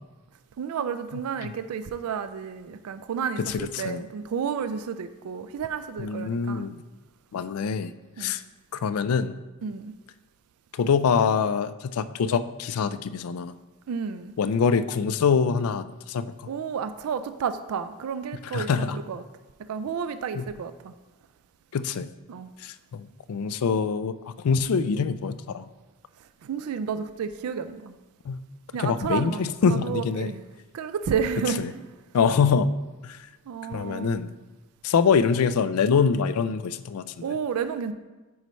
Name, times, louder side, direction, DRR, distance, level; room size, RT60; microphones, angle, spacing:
voice 1, 0.6-6.7 8.2-8.3 9.6-9.9 13.9-14.3 16.5-19.2 19.7-20.9 22.3-22.5 26.4-27.9 28.7-29.4 29.7-30.4 30.7-31.8 33.5-34.2 37.2-37.9, right 7 dB, 75° right, 11 dB, 0.4 m, -31 dB
voice 2, 3.4-4.1 6.0-6.8 7.3-7.9 8.2-8.4 8.7-9.3 10.7-13.5 14.4-16.3 18.5-19.0 20.3-20.4 21.7-22.1 22.6-24.2 24.4-25.7 28.3-28.4 28.8-30.3 31.6-31.7 32.1-32.7 33.0-33.2 33.7-34.3 34.8-37.0, left 6 dB, 75° left, 13 dB, 0.4 m, -24 dB
9.4 x 5.3 x 3.1 m, 1.2 s
head